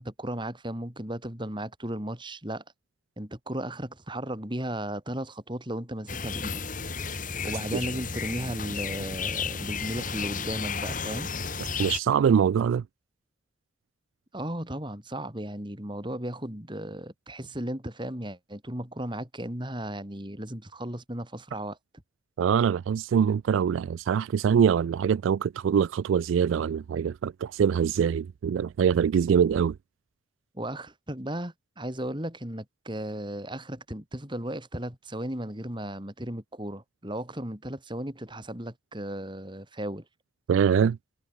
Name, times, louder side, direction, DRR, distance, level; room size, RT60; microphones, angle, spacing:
voice 1, 0.0-2.6 3.2-6.6 7.4-11.3 14.3-21.8 30.5-40.0, right 1 dB, 25° right, 4.1 m, -35 dB
sound 1, 6.1-12.0, left 5 dB, 45° left, 2.8 m, -33 dB
voice 2, 11.8-12.8 22.4-29.8 40.5-41.0, right 7 dB, 85° right, 0.3 m, -23 dB
head